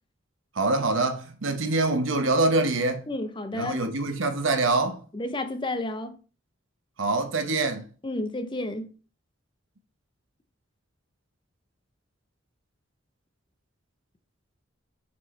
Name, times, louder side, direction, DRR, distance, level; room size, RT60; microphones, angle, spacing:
voice 1, 0.5-3.1 3.5-5.0 7.0-7.9, right 2 dB, 75° right, 0.9 m, -25 dB
voice 2, 3.1-3.8 5.1-6.2 8.0-8.9, left 2 dB, 25° left, 0.6 m, -31 dB
7.0 x 4.5 x 3.2 m
head